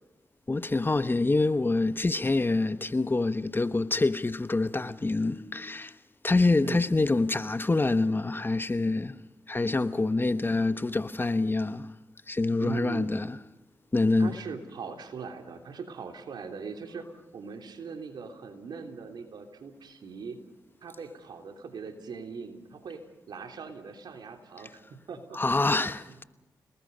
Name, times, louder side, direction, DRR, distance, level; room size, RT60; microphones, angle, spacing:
voice 1, 0.5-6.0 6.2-9.2 9.5-11.9 12.3-13.4 13.9-14.4 25.3-26.2, left 3 dB, 30° left, 1.1 m, -26 dB
voice 2, 12.6-13.1 14.2-17.0 17.3-20.4 20.8-23.0 23.3-25.8, right 5 dB, 75° right, 3.3 m, -40 dB
29.0 x 20.0 x 5.4 m
supercardioid pair, 45°, 7 cm